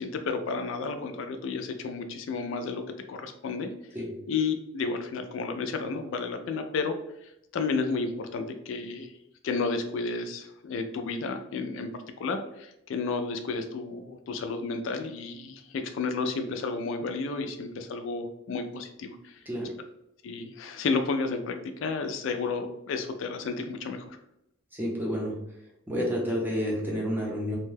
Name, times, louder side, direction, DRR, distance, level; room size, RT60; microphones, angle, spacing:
voice 1, 0.0-2.8 3.1-3.7 4.3-6.9 7.2-9.1 9.4-11.9 12.2-19.4 20.2-24.2, left 4 dB, 70° left, 7 dB, 0.3 m, -32 dB
voice 2, 24.7-25.4 25.9-27.6, equal, 10° right, -3 dB, 0.7 m, -30 dB
2.7 x 2.2 x 3.2 m, 0.82 s
head